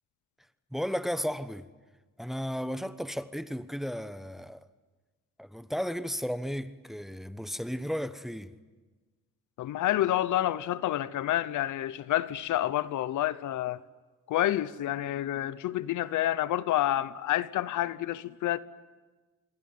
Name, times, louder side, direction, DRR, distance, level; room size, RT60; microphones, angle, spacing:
voice 1, 0.7-1.7 2.2-4.7 5.4-8.6, equal, ahead, 1.1 m, -34 dB
voice 2, 9.6-13.8 14.3-18.6, left 13 dB, 80° left, 1.0 m, -29 dB
27.0 x 22.5 x 9.5 m
cardioid pair, 90°, 30 cm